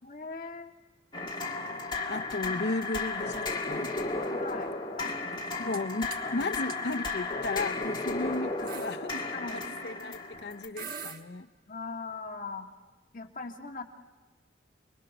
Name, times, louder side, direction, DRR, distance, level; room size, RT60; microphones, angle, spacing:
voice 1, 0.0-0.7 4.3-5.2 6.2-6.8 8.2-8.7 9.3-9.6 11.7-12.7 13.1-13.8, left 4 dB, 45° left, 1 dB, 1.8 m, -40 dB
sound 1, 1.1-10.7, left 3 dB, 25° left, 2.0 m, -34 dB
voice 2, 2.1-3.9 5.6-11.5, left 2 dB, 65° left, 8 dB, 0.7 m, -35 dB
sound 2, 5.3-5.8 6.1-6.3 6.7-6.8 7.6-7.9 8.2-8.3 8.7-9.0 10.3-10.5 10.8-11.2, right 6 dB, 50° right, 1.3 m, -41 dB
30.0 x 22.0 x 6.0 m, 1.3 s
head